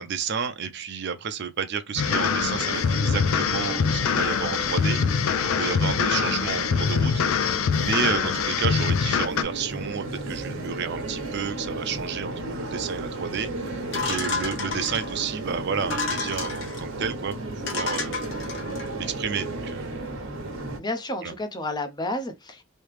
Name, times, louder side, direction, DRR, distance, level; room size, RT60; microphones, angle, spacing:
voice 1, 0.0-18.3 19.0-19.9 21.2-21.3, right 6 dB, 55° right, 0.5 m, -31 dB
sound 1, 2.0-9.4, left 6 dB, 80° left, 0.4 m, -24 dB
sound 2, 2.0-20.8, right 2 dB, 80° right, 1.0 m, -34 dB
voice 2, 5.8-6.1 20.8-22.6, left 1 dB, 20° left, 0.5 m, -31 dB
sound 3, 13.9-15.2 15.8-16.8 17.3-17.4 17.7-18.9, left 4 dB, 65° left, 1.0 m, -31 dB
3.1 x 2.8 x 3.2 m
head